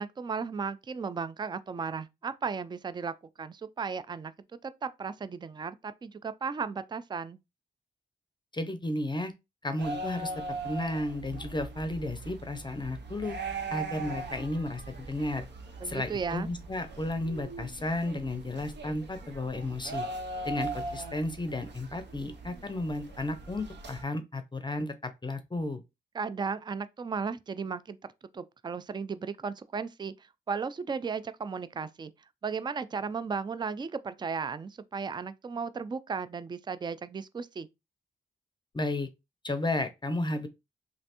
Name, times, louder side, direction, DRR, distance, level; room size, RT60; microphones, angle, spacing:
voice 1, 0.0-4.3 4.6-7.4 15.8-16.5 26.1-28.0 28.3-30.1 30.5-32.1 32.4-37.7, right 5 dB, 25° right, 0.3 m, -35 dB
voice 2, 8.5-9.3 9.6-10.3 10.6-13.4 13.7-15.5 15.8-20.1 20.4-25.8 38.7-39.1 39.4-40.5, left 2 dB, 25° left, 0.6 m, -33 dB
sound 1, 9.8-24.0, right 2 dB, 65° right, 0.7 m, -40 dB
3.2 x 2.5 x 2.9 m
supercardioid pair, 45°, 20 cm